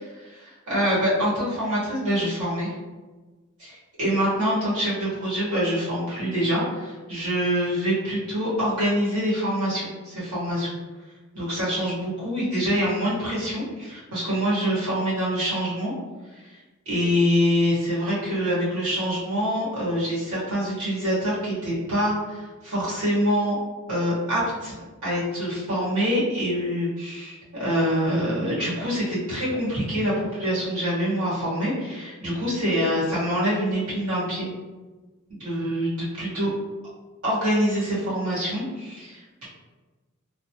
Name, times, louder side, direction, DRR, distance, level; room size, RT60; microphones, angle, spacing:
voice 1, 0.1-2.7 3.6-3.7 4.0-10.7 11.3-15.9 16.8-23.6 23.9-24.7 25.0-34.5 35.4-36.5 37.2-39.5, equal, 85° right, -8 dB, 1.4 m, -25 dB
3.1 x 2.0 x 2.8 m, 1.2 s
head